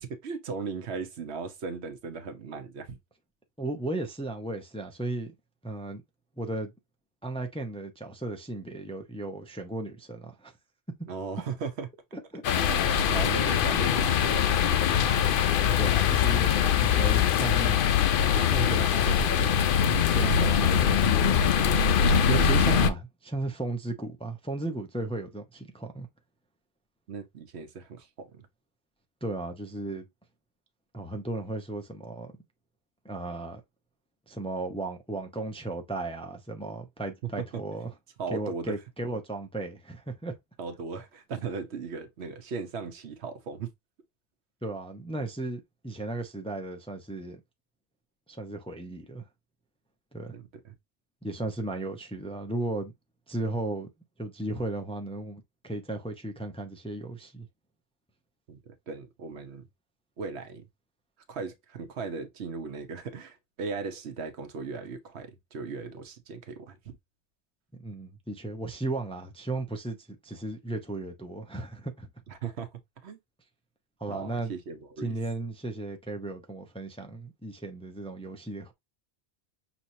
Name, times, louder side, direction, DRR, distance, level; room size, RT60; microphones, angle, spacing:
voice 1, 0.0-3.0 11.1-11.9 12.5-15.1 27.1-28.5 38.2-38.8 40.6-43.7 50.3-50.7 58.5-58.6 58.9-59.6 60.2-60.7 61.3-67.0 72.3-72.7 73.0-73.2 74.1-75.2, right 5 dB, 75° right, 1.1 m, -37 dB
voice 2, 3.6-5.3 5.6-6.0 6.4-6.7 7.2-10.5 12.3-12.4 15.8-17.9 18.4-19.6 20.1-21.4 22.2-26.1 29.2-30.1 30.9-32.3 33.0-33.6 34.3-37.9 38.3-40.3 44.6-47.4 48.3-49.2 50.1-50.3 51.2-52.9 53.3-53.9 54.2-57.5 67.8-70.0 70.2-72.1 74.0-74.5 75.0-78.7, right 2 dB, 5° left, 0.5 m, -35 dB
sound 1, 12.4-22.9, left 8 dB, 60° left, 0.7 m, -23 dB
6.1 x 2.9 x 2.7 m
omnidirectional pair, 1.1 m